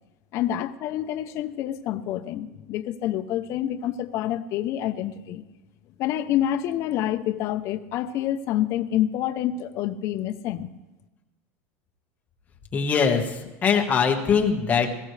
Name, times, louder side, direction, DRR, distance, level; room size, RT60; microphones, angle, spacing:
voice 1, 0.3-5.4 6.0-10.7, left 11 dB, 40° left, 8 dB, 0.7 m, -27 dB
voice 2, 12.7-13.4 13.6-14.9, left 6 dB, 20° left, 2 dB, 1.4 m, -21 dB
20.0 x 15.0 x 3.3 m, 1.1 s
cardioid pair, 165°, 8 cm